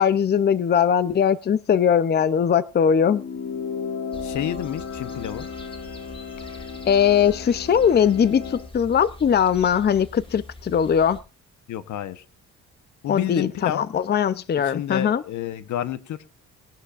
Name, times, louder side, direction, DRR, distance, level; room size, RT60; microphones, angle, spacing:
voice 1, 0.0-3.2 6.9-11.2 13.1-15.2, left 8 dB, 35° left, 16 dB, 0.6 m, -20 dB
sound 1, 3.0-8.7, left 6 dB, 55° left, 3.9 m, -34 dB
sound 2, 4.1-11.2, left 2 dB, 15° left, 2.1 m, -43 dB
voice 2, 4.2-5.5 11.7-12.2 13.0-13.8 14.7-16.2, left 11 dB, 75° left, 13 dB, 1.1 m, -29 dB
20.0 x 11.5 x 2.5 m, 0.31 s
cardioid pair, 90°, 30 cm